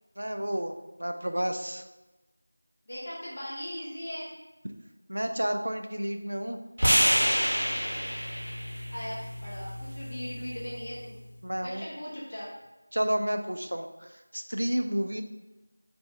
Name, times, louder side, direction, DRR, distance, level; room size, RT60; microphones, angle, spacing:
voice 1, 0.2-0.7 1.0-1.8 5.1-6.6 11.4-11.8 12.9-15.2, equal, 85° right, 6 dB, 0.4 m, -30 dB
voice 2, 2.9-4.3 8.9-11.2 11.6-12.5, equal, 20° left, -8 dB, 0.6 m, -38 dB
sound 1, 6.8-11.0, equal, 50° right, 1.2 m, -28 dB
3.2 x 2.6 x 3.5 m, 1.1 s
figure-of-eight pair, 180°, 0 cm